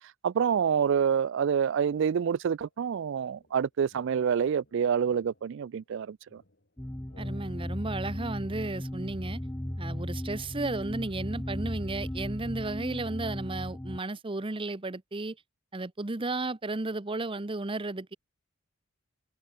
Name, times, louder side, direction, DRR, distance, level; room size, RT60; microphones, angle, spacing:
voice 1, 0.2-6.4, right 7 dB, 60° right, 0.3 m, -27 dB
sound 1, 1.9-2.7 3.3-10.6, left 2 dB, 50° left, 4.5 m, -61 dB
sound 2, 6.8-14.0, left 1 dB, 10° left, 0.7 m, -36 dB
voice 2, 7.2-9.4 9.8-15.4 15.7-18.2, right 2 dB, 25° right, 0.8 m, -34 dB
head